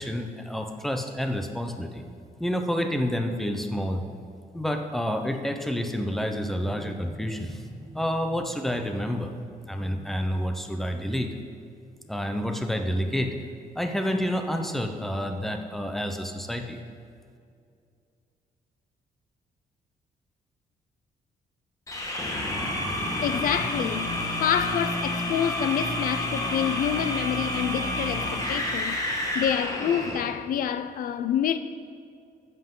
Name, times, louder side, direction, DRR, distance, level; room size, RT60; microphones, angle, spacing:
voice 1, 0.0-2.0 2.4-4.0 4.5-9.3 9.7-11.4 12.1-13.3 13.7-16.8, equal, ahead, 0.7 m, -29 dB
sound 1, 21.9-30.4, left 1 dB, 20° left, 1.4 m, -29 dB
voice 2, 22.5-29.0 29.3-31.6, left 9 dB, 65° left, 0.4 m, -28 dB
13.0 x 8.0 x 3.8 m
cardioid pair, 150°, 15 cm